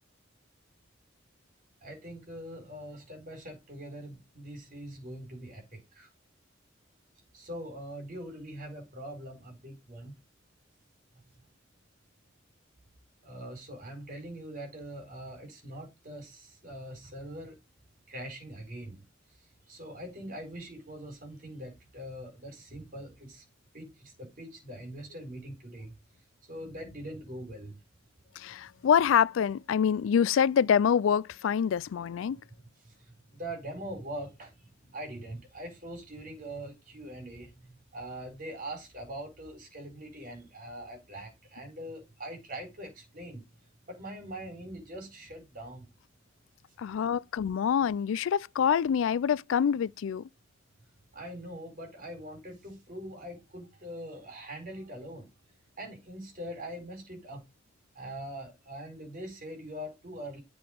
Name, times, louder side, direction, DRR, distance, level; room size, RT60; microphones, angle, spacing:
voice 1, 1.8-6.1 7.3-10.1 13.2-17.6 18.1-19.0 19.7-23.4 23.7-25.9 26.5-27.8 32.2-32.3 32.8-33.0 33.3-43.5 43.9-45.9 51.1-55.3 55.8-57.4 57.9-60.4, right 1 dB, 45° right, 4.5 m, -42 dB
voice 2, 28.4-32.4 46.8-50.3, left 7 dB, 85° left, 0.3 m, -26 dB
7.9 x 4.8 x 5.1 m
head